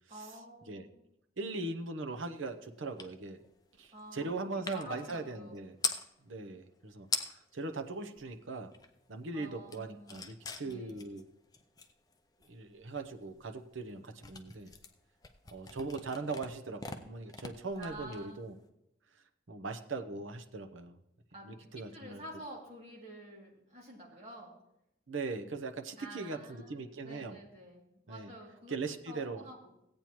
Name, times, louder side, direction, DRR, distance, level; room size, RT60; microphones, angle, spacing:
voice 1, 0.1-0.9 3.9-5.6 9.3-10.2 10.6-11.0 17.8-18.4 21.3-24.5 26.0-28.7 29.1-29.7, right 1 dB, 35° right, -3 dB, 2.7 m, -49 dB
voice 2, 1.4-3.4 3.8-5.8 6.2-7.1 7.5-8.7 9.1-11.3 12.5-14.7 15.5-18.6 19.5-21.0 21.4-22.2 25.1-27.4 28.1-28.3 28.7-29.4, right 3 dB, 80° right, 6 dB, 0.8 m, -40 dB
sound 1, 3.0-3.1 3.4-6.1 6.8-6.9 7.0-7.6 8.0-9.1 9.4-18.6, left 5 dB, 20° left, 0.5 m, -42 dB
16.5 x 8.8 x 3.1 m, 0.83 s
head